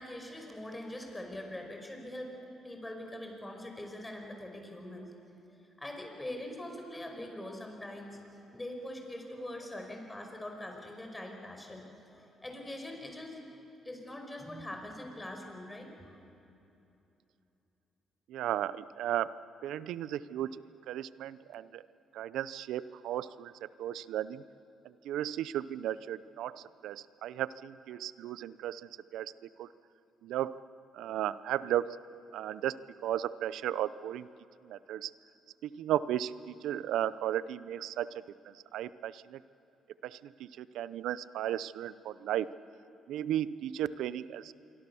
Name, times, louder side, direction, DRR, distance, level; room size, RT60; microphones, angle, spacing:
voice 1, 0.0-5.1 5.5-13.4 13.8-16.2, left 1 dB, 15° left, 3 dB, 5.2 m, -43 dB
voice 2, 18.3-21.8 22.1-24.4 24.8-29.3 29.6-29.7 30.2-30.6 30.9-32.0 32.3-34.3 34.6-35.1 35.6-38.1 38.5-39.4 40.0-42.5 43.1-44.5, right 11 dB, 85° right, 16 dB, 0.6 m, -35 dB
27.0 x 23.5 x 7.0 m, 2.8 s
cardioid pair, 90°, 0 cm